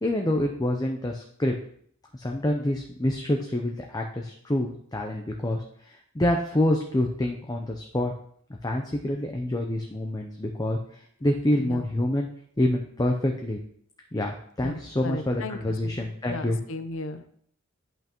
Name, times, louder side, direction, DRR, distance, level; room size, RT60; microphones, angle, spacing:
voice 1, 0.0-1.5 2.1-8.1 8.6-12.3 12.6-13.6 14.1-16.6, left 1 dB, 20° left, 2 dB, 0.6 m, -27 dB
voice 2, 14.6-15.6 15.8-17.3, left 2 dB, 65° left, 10 dB, 0.7 m, -36 dB
11.0 x 5.6 x 3.0 m, 0.63 s
head